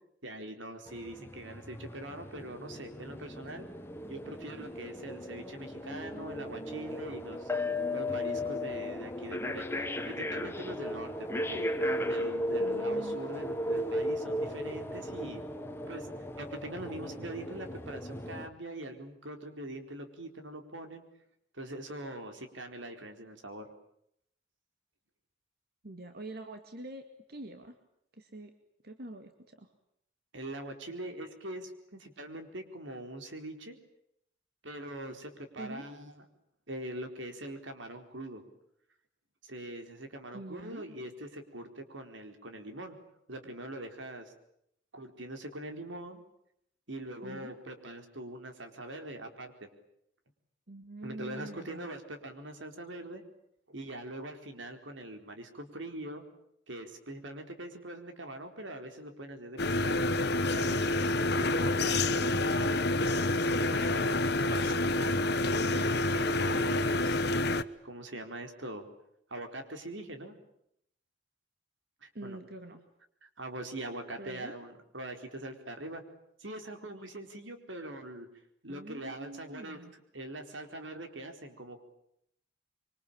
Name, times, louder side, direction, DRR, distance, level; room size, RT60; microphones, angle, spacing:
voice 1, 0.2-3.7 4.1-7.5 7.9-11.7 12.1-15.4 15.9-16.1 16.4-21.0 21.5-23.7 30.3-33.8 34.6-36.2 36.7-38.4 39.4-43.0 43.3-44.3 44.9-46.2 46.9-49.7 51.0-53.2 53.7-56.2 56.7-60.1 60.5-62.8 63.3-65.2 65.7-67.2 67.8-68.8 69.3-70.4 72.0-72.4 73.2-76.0 76.4-78.3 78.6-81.8, right 1 dB, 85° right, 6 dB, 4.4 m, -43 dB
sound 1, 0.9-18.5, left 1 dB, 15° left, 1.7 m, -36 dB
voice 2, 12.6-13.2 25.8-27.8 28.1-28.5 28.8-29.7 35.6-35.9 40.3-40.9 47.2-47.5 50.7-51.9 72.1-72.8 74.2-74.5 78.7-79.9, right 2 dB, 55° right, 7 dB, 2.2 m, -45 dB
sound 2, 59.6-67.6, left 2 dB, 60° left, 1.1 m, -28 dB
26.0 x 25.0 x 8.9 m, 0.74 s
head